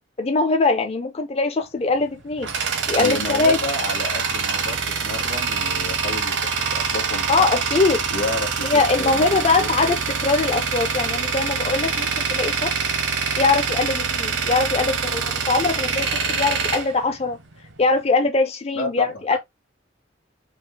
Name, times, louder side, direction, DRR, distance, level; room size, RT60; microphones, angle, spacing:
voice 1, 0.2-2.5 2.9-3.6 7.3-8.0 8.6-12.7 13.4-17.4 17.8-19.4, left 3 dB, 30° left, 0.5 m, -22 dB
Tools, 1.9-17.8, right 5 dB, 70° right, 0.9 m, -25 dB
voice 2, 3.0-7.5 8.1-10.0 18.7-19.4, left 2 dB, 65° left, 1.5 m, -31 dB
5.1 x 2.1 x 3.8 m
head